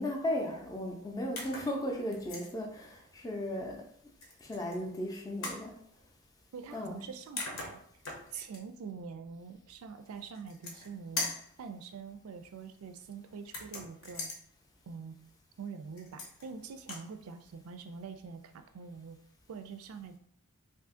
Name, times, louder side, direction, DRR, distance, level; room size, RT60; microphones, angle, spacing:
voice 1, 0.0-3.8 4.4-5.8 6.7-7.0, left 1 dB, 15° left, 0 dB, 0.4 m, -36 dB
sound 1, 1.4-1.7 2.1-2.5 4.2-4.8 5.4-5.7 7.0-7.1 7.4-8.6 10.3-10.9 11.2-11.5 13.5-14.4 16.0-16.5 16.8-17.1, left 3 dB, 65° left, 0.8 m, -40 dB
voice 2, 6.5-7.8 8.3-11.3 11.6-14.3 14.9-15.2 15.6-19.2 19.5-20.2, right 5 dB, 75° right, 8 dB, 0.4 m, -45 dB
2.6 x 2.5 x 3.6 m, 0.64 s
head